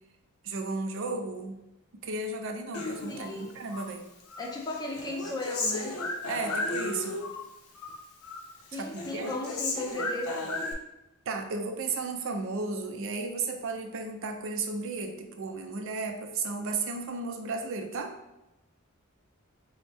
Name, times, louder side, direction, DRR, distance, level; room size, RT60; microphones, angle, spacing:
voice 1, 0.4-1.6 1.9-4.1 6.3-7.2 8.7-9.3 11.3-18.2, right 3 dB, 65° right, 5 dB, 0.5 m, -34 dB
Human voice, 2.7-3.9 4.3-7.5 7.7-8.5 8.7-10.7, left 2 dB, 85° left, 0.6 m, -34 dB
voice 2, 3.1-3.6 4.4-6.0 8.7-10.6, left 1 dB, 20° left, 0 dB, 0.6 m, -36 dB
5.2 x 2.1 x 3.3 m, 0.94 s
head